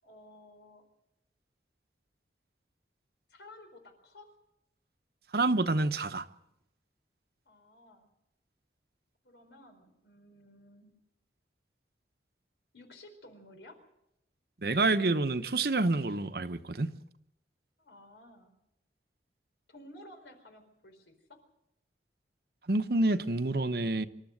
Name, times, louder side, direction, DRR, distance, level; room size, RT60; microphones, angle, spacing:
voice 1, 0.0-0.8 3.3-4.3 7.5-8.1 9.2-11.0 12.7-13.8 17.8-18.5 19.7-21.4, left 1 dB, 85° left, 4.5 m, -54 dB
voice 2, 5.3-6.2 14.6-16.9 22.7-24.1, right 2 dB, 60° right, 0.9 m, -28 dB
26.5 x 13.0 x 7.8 m
head